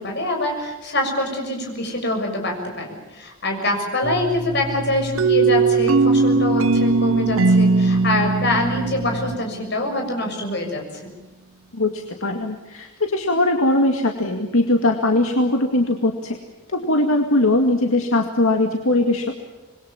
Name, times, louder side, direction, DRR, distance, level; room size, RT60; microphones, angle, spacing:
voice 1, 0.0-11.1, left 1 dB, 50° left, 2 dB, 6.7 m, -25 dB
Domestic sounds home sounds, 4.0-9.4, right 1 dB, 20° right, 1.3 m, -31 dB
sound 1, 5.2-9.9, right 4 dB, 65° right, 0.7 m, -19 dB
voice 2, 11.7-16.4 16.7-19.3, left 2 dB, 75° left, 3 dB, 2.2 m, -20 dB
26.5 x 22.0 x 7.3 m, 1.2 s
head